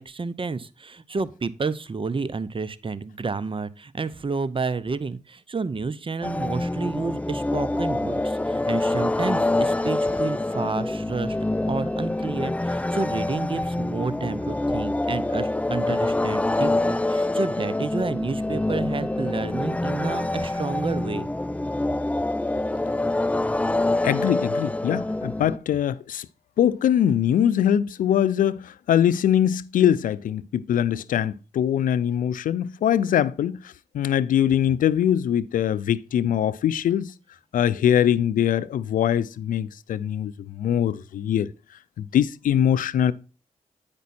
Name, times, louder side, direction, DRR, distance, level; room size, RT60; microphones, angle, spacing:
voice 1, 0.0-11.4 11.7-21.3, right 4 dB, 40° right, 0.7 m, -30 dB
sound 1, 6.2-25.6, left 2 dB, 10° left, 0.4 m, -26 dB
voice 2, 24.0-26.3 26.6-33.6 33.9-37.1 37.5-41.5 42.0-43.1, left 10 dB, 85° left, 0.4 m, -22 dB
9.3 x 5.2 x 4.2 m
cardioid pair, 50°, 13 cm